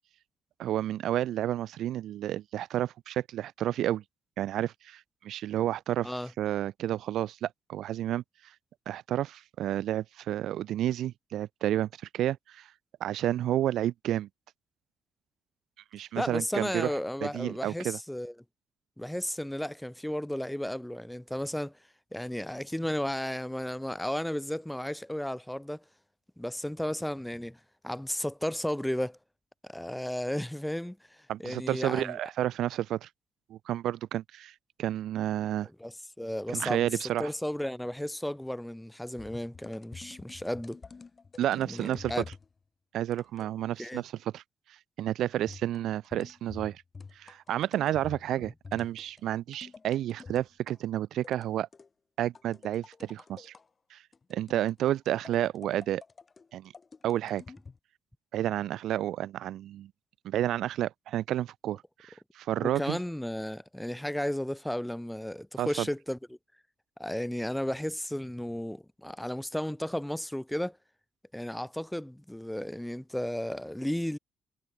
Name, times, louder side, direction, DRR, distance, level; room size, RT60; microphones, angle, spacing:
voice 1, 0.6-4.0 4.4-6.1 6.4-8.2 8.9-11.9 12.1-12.7 13.0-14.3 15.9-16.9 17.2-18.0 31.3-33.1 33.5-35.7 36.5-37.3 41.4-42.2 42.9-44.4 45.0-46.8 47.2-51.7 52.2-53.5 53.9-54.0 54.3-56.0 56.5-56.7 57.0-57.4 58.3-59.9 60.2-63.0 65.6-65.9, right 12 dB, 80° right, 0.4 m, -31 dB
voice 2, 16.2-18.3 19.0-21.7 22.1-25.8 26.4-29.2 29.6-32.2 35.8-36.9 37.2-40.8 41.6-42.2 43.8-44.0 48.4-48.5 62.6-66.2 67.0-70.8 71.3-74.2, left 1 dB, 5° left, 0.3 m, -34 dB
sound 1, 39.2-42.5 43.1-43.6 45.5-50.8 51.2-51.9 52.3-53.6 54.1-57.8, left 4 dB, 35° left, 1.4 m, -49 dB
cardioid pair, 90°, 0 cm